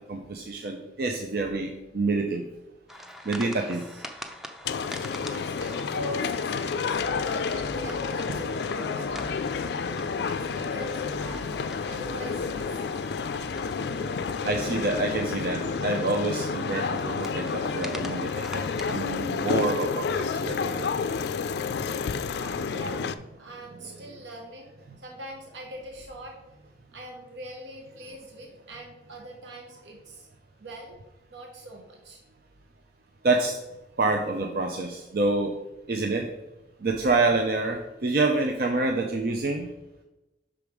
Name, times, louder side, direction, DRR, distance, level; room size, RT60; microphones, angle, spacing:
voice 1, 0.1-2.5 3.3-3.8 14.4-20.9 22.3-22.4 33.2-33.6 34.0-35.5 35.9-36.3 36.8-39.7, right 3 dB, 55° right, 3 dB, 0.5 m, -27 dB
sound 1, 2.9-19.2, left 1 dB, ahead, 0.5 m, -45 dB
voice 2, 3.4-4.0 5.1-12.8 22.2-24.7 25.0-26.4 26.9-30.3 30.6-31.0 31.3-32.2, equal, 80° right, 1 dB, 1.0 m, -42 dB
sound 2, 4.6-23.1, left 5 dB, 65° left, 0.3 m, -30 dB
sound 3, 6.9-21.7, equal, 30° right, 1.0 m, -48 dB
6.1 x 5.2 x 4.7 m, 0.97 s
head